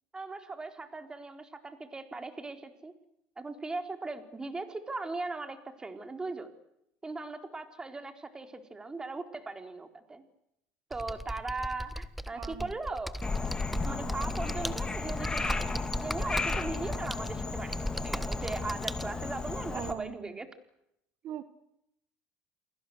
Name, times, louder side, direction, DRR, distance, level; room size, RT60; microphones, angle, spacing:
voice 1, 0.1-2.9 3.4-6.5 7.0-10.3 10.9-13.1 13.8-20.5, right 3 dB, 15° right, 7 dB, 4.2 m, -39 dB
Computer keyboard, 10.9-19.0, equal, ahead, 1.4 m, -38 dB
voice 2, 12.3-12.7 19.6-20.4 21.2-21.4, right 11 dB, 55° right, 12 dB, 1.6 m, -41 dB
Frog, 13.2-19.9, left 3 dB, 20° left, 3.1 m, -34 dB
29.5 x 21.0 x 8.0 m, 0.78 s
supercardioid pair, 95°, 4 cm